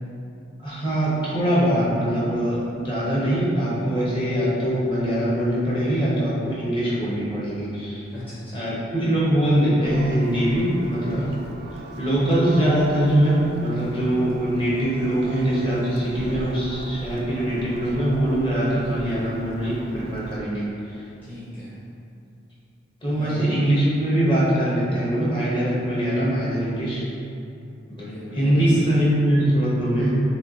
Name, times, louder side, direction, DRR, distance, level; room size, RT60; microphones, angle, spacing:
voice 1, 0.6-8.0 8.5-11.3 12.0-20.7 23.0-27.1 28.3-30.1, right 1 dB, 25° left, -8 dB, 1.0 m, -22 dB
voice 2, 8.1-8.6 21.2-21.7 23.1-23.4 27.9-28.7, left 1 dB, 10° left, -12 dB, 0.6 m, -37 dB
Church bell, 9.8-20.4, right 2 dB, 55° right, 0.3 m, -39 dB
5.5 x 2.3 x 2.8 m, 2.7 s
head